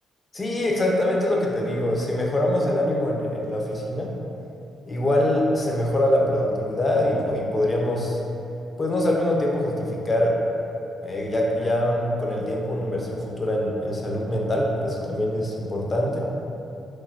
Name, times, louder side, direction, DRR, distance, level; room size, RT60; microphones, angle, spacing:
voice 1, 0.3-4.1 4.9-8.2 8.8-10.4 11.0-16.2, left 1 dB, 30° left, -2 dB, 0.4 m, -24 dB
3.0 x 2.6 x 2.5 m, 2.7 s
cardioid pair, 90°, 0 cm